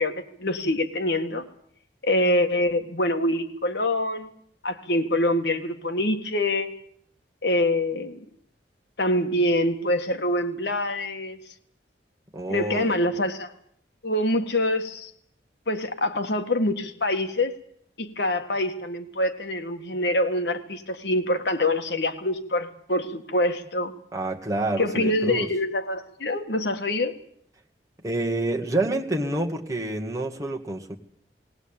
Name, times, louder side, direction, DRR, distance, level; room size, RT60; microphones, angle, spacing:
voice 1, 0.0-1.5 2.0-4.3 4.6-6.7 7.4-8.2 9.0-11.4 12.5-13.5 14.0-15.1 15.7-17.5 18.0-23.9 24.8-27.2, left 1 dB, 70° left, 6 dB, 1.9 m, -25 dB
voice 2, 12.3-13.1 24.1-25.5 28.0-30.9, right 2 dB, 15° right, 0 dB, 1.9 m, -28 dB
19.5 x 18.5 x 8.9 m, 0.66 s
head